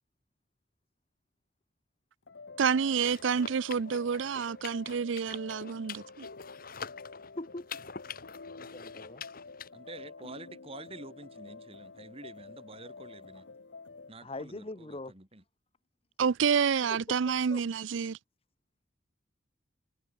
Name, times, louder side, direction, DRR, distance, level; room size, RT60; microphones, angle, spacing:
sound 1, 2.3-14.1, left 4 dB, 70° left, 0.9 m, -49 dB
voice 1, 2.6-6.3 16.2-18.2, right 6 dB, 85° right, 0.5 m, -28 dB
sound 2, 2.9-9.7, left 6 dB, 50° left, 2.1 m, -46 dB
voice 2, 7.4-7.7 8.5-9.2 14.2-15.1 16.9-17.2 17.5-17.6, left 2 dB, 30° left, 1.0 m, -41 dB
voice 3, 9.7-13.5 14.1-15.4, right 2 dB, 30° right, 3.0 m, -48 dB
head